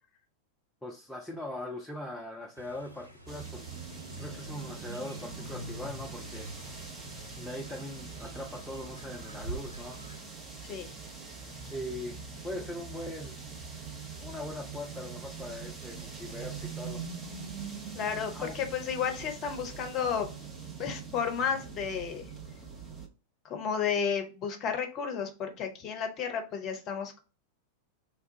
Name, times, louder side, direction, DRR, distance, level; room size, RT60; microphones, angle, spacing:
voice 1, 0.8-3.8 4.2-6.5 7.4-10.0 11.7-13.4 14.2-17.0 18.3-18.5, left 1 dB, ahead, -2 dB, 0.6 m, -40 dB
Fowl, 2.5-10.2, right 2 dB, 90° left, 0.5 m, -48 dB
sound 1, 3.3-23.1, right 4 dB, 20° right, 0.9 m, -43 dB
voice 2, 17.9-20.3 20.8-22.3 23.4-27.2, left 7 dB, 35° left, 5 dB, 0.8 m, -32 dB
3.4 x 2.3 x 3.9 m, 0.33 s
figure-of-eight pair, 90°, 0 cm